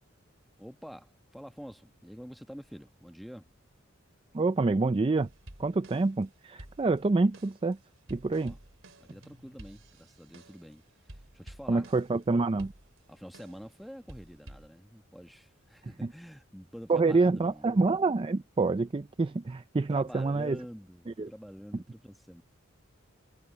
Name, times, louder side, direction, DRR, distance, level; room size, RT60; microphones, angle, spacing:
voice 1, 0.6-3.5 8.4-8.6 9.0-11.9 13.1-17.7 19.9-22.4, equal, ahead, 1.3 m, -47 dB
voice 2, 4.3-5.3 5.6-7.8 8.1-8.5 11.7-12.7 16.9-20.6 21.2-21.3, right 3 dB, 25° right, 0.4 m, -27 dB
sound 1, 5.2-6.2 6.6-10.7 11.1-12.2 12.6-13.7 14.1-14.7, right 1 dB, 80° right, 3.1 m, -51 dB
head